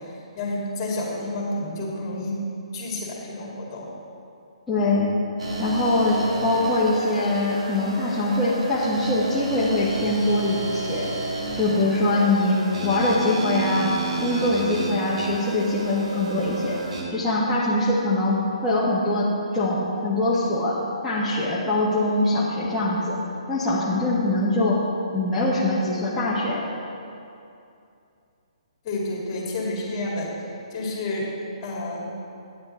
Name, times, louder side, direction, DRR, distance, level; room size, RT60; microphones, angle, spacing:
voice 1, 0.0-2.4 2.7-3.9 11.6-11.8 28.8-30.3 30.7-31.3 31.6-32.1, left 2 dB, 35° left, -3 dB, 2.2 m, -30 dB
voice 2, 4.7-5.1 5.6-11.1 11.6-16.8 17.1-23.2 23.5-24.8 25.1-26.7, left 2 dB, 5° left, -11 dB, 1.3 m, -23 dB
sound 1, 5.4-17.0, right 2 dB, 70° right, 1.9 m, -31 dB
9.4 x 7.8 x 4.3 m, 2.6 s
hypercardioid pair, 145°, 3 cm